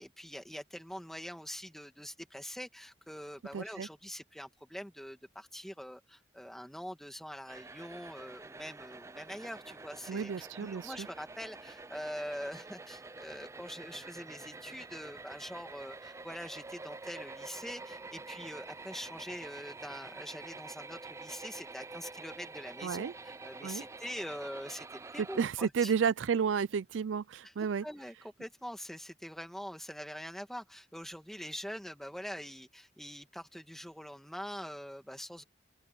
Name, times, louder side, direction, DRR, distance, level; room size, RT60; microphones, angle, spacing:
voice 1, 0.0-25.9 27.4-27.5 27.8-35.4, equal, ahead, 1.9 m, -44 dB
voice 2, 3.5-3.9 10.1-11.1 22.8-23.1 23.6-23.8 25.4-27.8, right 6 dB, 90° right, 0.4 m, -32 dB
sound 1, 7.5-25.5, right 3 dB, 15° right, 0.4 m, -48 dB
open air
head